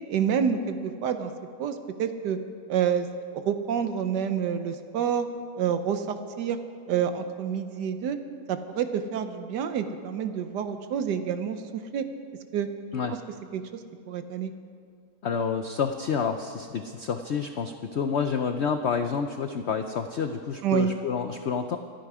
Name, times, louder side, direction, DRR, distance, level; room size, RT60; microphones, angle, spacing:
voice 1, 0.1-1.3 1.6-2.4 2.7-3.1 3.3-5.3 5.6-6.6 6.9-8.2 8.5-12.0 12.5-12.7 13.5-13.6 14.1-14.5 20.6-20.9, right 8 dB, 80° right, 9 dB, 1.4 m, -28 dB
voice 2, 15.2-21.8, left 6 dB, 65° left, 7 dB, 0.6 m, -29 dB
26.0 x 9.2 x 4.9 m, 2.2 s
omnidirectional pair, 1.8 m